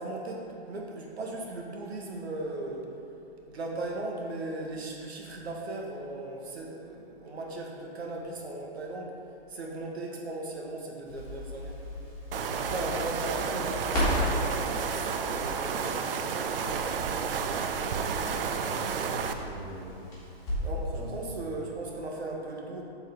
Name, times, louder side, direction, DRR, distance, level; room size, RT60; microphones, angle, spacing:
voice 1, 0.0-2.9 3.5-9.1 9.5-11.8 12.5-16.9 20.6-22.8, right 2 dB, 85° right, 0 dB, 1.4 m, -37 dB
Crackle, 11.1-20.9 21.2-21.3, left 1 dB, 10° left, 1.4 m, -36 dB
sound 1, 12.3-19.3, right 6 dB, 60° right, 0.5 m, -31 dB
voice 2, 18.5-20.1 20.9-21.5, right 1 dB, 25° right, -3 dB, 0.7 m, -42 dB
7.2 x 3.8 x 5.3 m, 2.9 s
hypercardioid pair, 170°, 31 cm